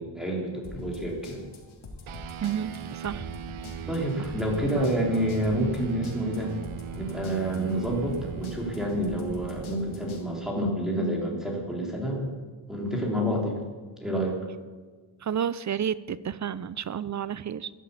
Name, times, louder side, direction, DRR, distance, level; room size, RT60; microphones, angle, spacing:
voice 1, 0.0-1.4 3.9-6.5 7.0-12.4 12.7-13.6 14.0-14.4, equal, ahead, -1 dB, 3.6 m, -28 dB
sound 1, 0.6-10.2, left 2 dB, 75° left, 2.6 m, -44 dB
sound 2, 2.1-11.8, right 11 dB, 80° right, 0.8 m, -40 dB
voice 2, 2.4-3.3 4.7-4.8 15.2-17.7, right 8 dB, 40° right, 18 dB, 0.5 m, -31 dB
13.0 x 11.0 x 8.3 m, 1.4 s
wide cardioid pair, 115°, 48 cm